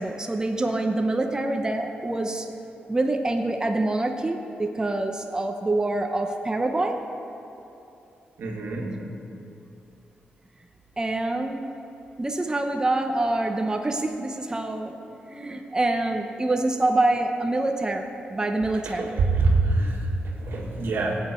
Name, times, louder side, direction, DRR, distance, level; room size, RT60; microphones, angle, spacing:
voice 1, 0.0-2.5 2.9-7.0 11.0-11.7 12.2-15.0 15.3-19.2, right 2 dB, 20° right, 4 dB, 0.9 m, -26 dB
voice 2, 8.4-9.0 18.8-21.2, right 3 dB, 75° right, 0 dB, 1.8 m, -25 dB
15.5 x 8.5 x 4.5 m, 2.8 s
cardioid pair, 65°, 4 cm